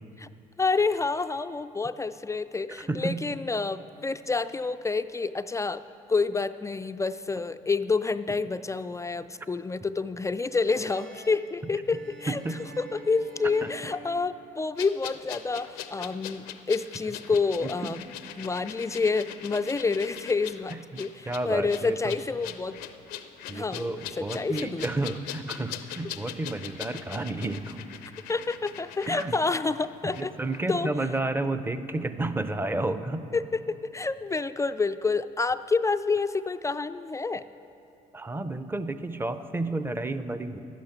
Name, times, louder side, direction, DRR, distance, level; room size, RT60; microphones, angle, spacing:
voice 1, 0.6-5.8 6.1-12.4 12.8-18.0 18.4-22.8 23.5-25.1 28.3-30.3 30.7-30.9 33.3-37.4, left 4 dB, 20° left, 11 dB, 0.3 m, -28 dB
voice 2, 2.7-3.2 12.3-12.6 13.6-13.7 17.6-18.0 20.9-22.2 23.5-27.9 29.1-29.3 30.0-33.2 38.1-40.6, right 2 dB, 15° right, 11 dB, 0.6 m, -31 dB
sound 1, 10.4-15.0, right 2 dB, 60° right, 1.6 m, -48 dB
sound 2, 14.8-30.3 30.5-30.6, left 11 dB, 85° left, 0.6 m, -41 dB
11.5 x 10.5 x 5.9 m, 2.7 s
supercardioid pair, 70°, 16 cm